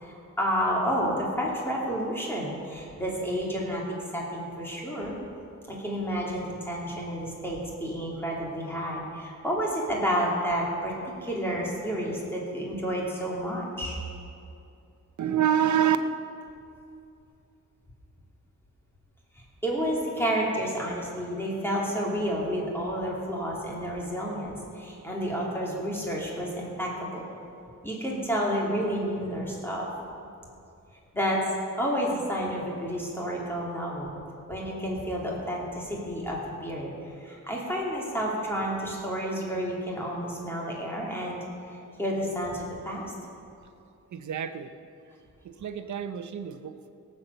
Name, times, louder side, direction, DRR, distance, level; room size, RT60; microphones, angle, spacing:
voice 1, 0.0-5.2 5.7-10.9 11.2-14.0 19.6-27.3 27.8-29.9 31.1-31.4 31.8-34.2 34.5-36.9 37.2-41.4 42.0-43.0, equal, 5° left, -4 dB, 2.8 m, -30 dB
voice 2, 15.2-16.0 44.1-44.7 45.4-46.9, right 10 dB, 70° right, 9 dB, 0.8 m, -27 dB
17.5 x 7.6 x 6.8 m, 2.6 s
wide cardioid pair, 150°, 30 cm